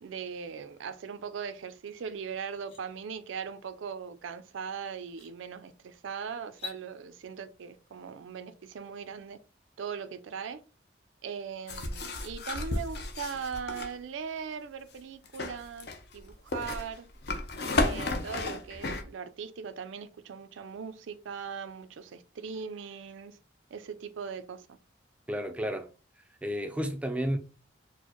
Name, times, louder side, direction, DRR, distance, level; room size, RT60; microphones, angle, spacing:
voice 1, 0.0-9.4 9.8-10.6 11.2-17.1 17.8-23.4 23.7-24.8, right 6 dB, 85° right, 0.4 m, -39 dB
sound 1, 1.9-2.0 2.4-2.8 4.4-4.5 5.0-5.3 6.4-6.8, left 8 dB, 30° left, 1.1 m, -44 dB
sound 2, 11.7-13.9 15.2-19.0, left 2 dB, 55° left, 0.6 m, -32 dB
voice 2, 25.3-25.9 26.4-27.4, equal, 5° right, 0.3 m, -31 dB
4.4 x 2.0 x 2.9 m
head